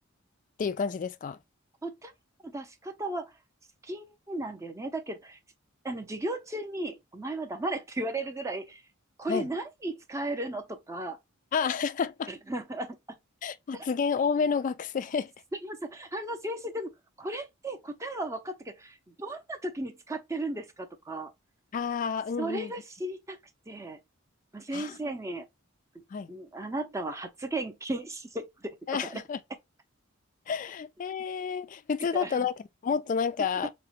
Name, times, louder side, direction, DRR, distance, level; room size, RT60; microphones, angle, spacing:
voice 1, 0.6-1.4 9.3-9.5 11.5-12.3 13.4-15.3 21.7-22.7 24.7-25.0 26.1-26.3 28.9-29.4 30.5-32.5 32.8-33.7, left 6 dB, 40° left, 0.3 m, -30 dB
voice 2, 1.8-2.1 2.4-3.3 3.8-5.4 5.8-8.8 9.2-11.2 12.3-13.0 13.7-13.9 15.6-16.9 17.2-21.3 22.4-23.4 23.7-24.0 24.5-25.5 25.9-26.0 26.3-29.2 32.1-32.5, right 1 dB, 15° right, 0.5 m, -35 dB
4.8 x 2.1 x 2.8 m
head